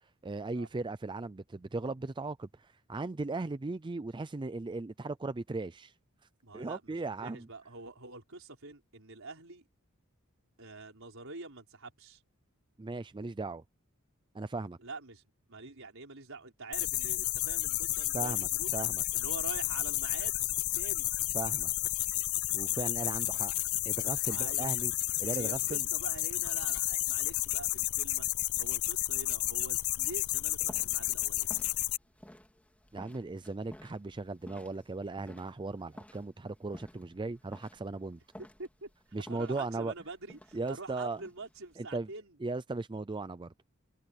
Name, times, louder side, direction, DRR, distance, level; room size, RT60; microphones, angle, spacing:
voice 1, 0.0-5.9 6.5-7.5 12.8-13.6 14.3-14.8 18.1-19.0 21.3-21.7 22.5-23.5 23.9-24.9 25.2-25.9 32.9-38.2 39.1-39.9 40.5-41.2 41.8-42.1 42.4-43.7, right 3 dB, 20° right, 0.5 m, -37 dB
voice 2, 6.4-9.6 10.6-12.2 14.8-15.2 15.5-18.8 19.1-20.4 20.7-21.1 24.3-24.7 25.2-28.3 28.6-31.6 38.4-38.9 39.3-42.4, right 3 dB, 65° right, 5.3 m, -46 dB
sound 1, 16.7-32.0, left 17 dB, 90° left, 0.6 m, -32 dB
sound 2, 29.5-41.7, equal, 5° left, 3.2 m, -54 dB
head